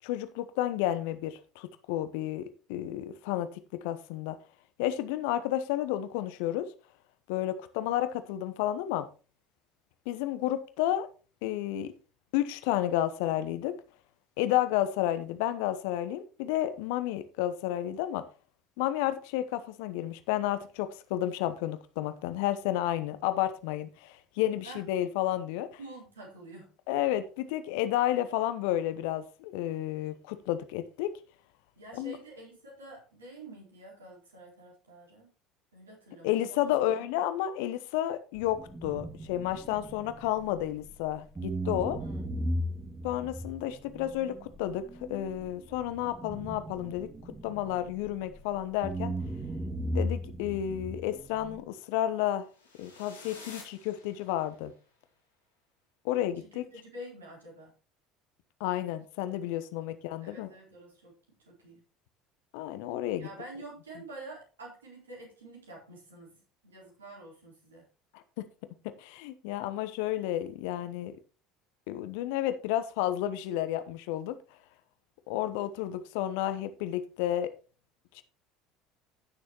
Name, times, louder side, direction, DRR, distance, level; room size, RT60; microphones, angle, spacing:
voice 1, 0.0-4.4 4.8-6.7 7.3-9.1 10.1-11.1 11.4-11.9 12.3-13.7 14.4-18.2 18.8-25.7 26.9-31.1 31.9-32.2 36.2-42.0 43.0-47.1 47.4-49.1 49.9-52.5 52.8-54.7 56.0-56.6 58.6-60.5 62.5-63.3 68.1-68.5 68.8-71.2 71.9-74.4 75.3-77.5 78.1-78.2, left 13 dB, 60° left, 0.9 m, -31 dB
voice 2, 25.8-26.7 31.8-35.3 35.7-37.1 42.0-42.3 56.4-57.7 59.8-59.9 60.2-61.8 63.2-67.9, right 2 dB, 75° right, 4.0 m, -48 dB
sound 1, 38.4-41.0 41.4-48.4 48.8-51.6, equal, 15° right, 1.9 m, -37 dB
sound 2, 52.5-54.7, left 3 dB, 80° left, 3.4 m, -50 dB
15.5 x 6.6 x 3.0 m
figure-of-eight pair, 65°, 0 cm